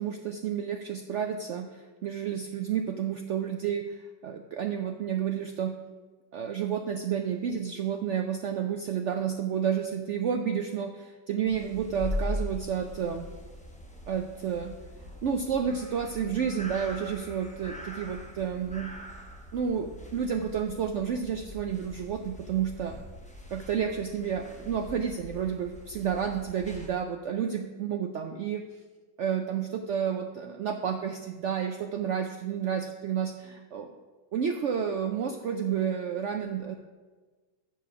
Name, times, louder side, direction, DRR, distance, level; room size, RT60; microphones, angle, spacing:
voice 1, 0.0-5.7 6.3-13.2 14.1-14.7 15.2-18.9 19.5-22.9 23.5-28.6 29.2-33.9 34.3-36.7, right 8 dB, 85° right, 5 dB, 0.6 m, -30 dB
sound 1, 11.5-26.9, left 1 dB, 5° left, 0.7 m, -41 dB
7.6 x 6.7 x 5.9 m, 1.3 s
omnidirectional pair, 1.9 m